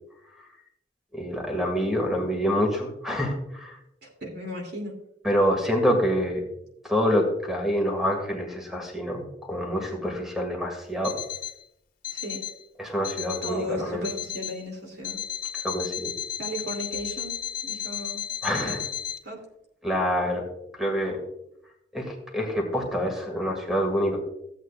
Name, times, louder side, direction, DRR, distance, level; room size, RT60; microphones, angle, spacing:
voice 1, 1.1-3.8 5.2-6.4 6.8-11.2 12.8-14.0 15.6-16.1 18.4-18.8 19.8-20.4 20.8-21.2 21.9-24.2, equal, ahead, 2 dB, 1.9 m, -26 dB
voice 2, 4.0-5.0 12.1-12.4 13.4-15.2 16.4-18.2 18.5-18.8 19.2-19.4, equal, 65° right, 1 dB, 2.6 m, -35 dB
Alarm, 11.0-11.6 12.0-12.6 13.0-13.6 14.0-14.6 15.0-19.2, left 10 dB, 55° left, 1.6 m, -34 dB
15.5 x 8.5 x 2.4 m, 0.79 s
head